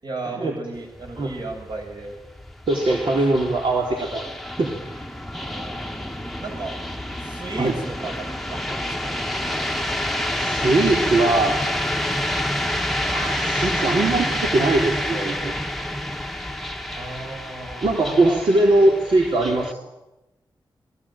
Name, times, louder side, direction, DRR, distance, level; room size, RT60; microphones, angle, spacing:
voice 1, 0.0-2.2 3.0-3.2 5.5-6.8 7.2-9.2 17.0-18.4, right 3 dB, 55° right, 2 dB, 7.5 m, -35 dB
sound 1, 0.7-19.7, left 1 dB, ahead, 1.2 m, -28 dB
voice 2, 2.7-4.3 4.6-5.0 7.6-7.7 10.4-11.6 13.1-15.5 17.8-19.7, right 2 dB, 70° right, 0 dB, 3.9 m, -21 dB
29.0 x 20.5 x 9.1 m, 0.99 s
wide cardioid pair, 155°, 9 cm